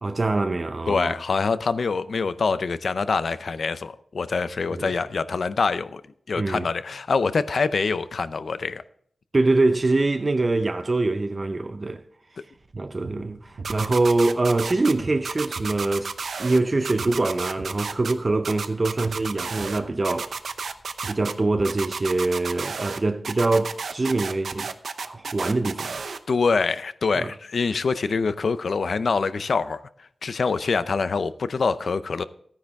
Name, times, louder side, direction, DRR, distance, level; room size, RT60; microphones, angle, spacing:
voice 1, 0.0-1.1 4.7-4.9 6.4-6.7 9.3-12.0 12.7-16.1 16.4-20.4 21.1-24.7 25.0-26.0 27.1-27.3, right 2 dB, 35° right, 0.5 m, -24 dB
voice 2, 0.9-6.0 6.3-8.8 26.3-32.2, left 4 dB, 70° left, 0.6 m, -25 dB
sound 1, 12.5-22.5, right 3 dB, 60° right, 1.0 m, -44 dB
sound 2, 13.6-14.9 15.2-16.6 16.8-18.1 18.4-19.8 20.0-21.3 21.6-23.0 23.2-26.2, right 5 dB, 85° right, 0.7 m, -32 dB
13.0 x 9.9 x 3.5 m
wide cardioid pair, 95°, 0 cm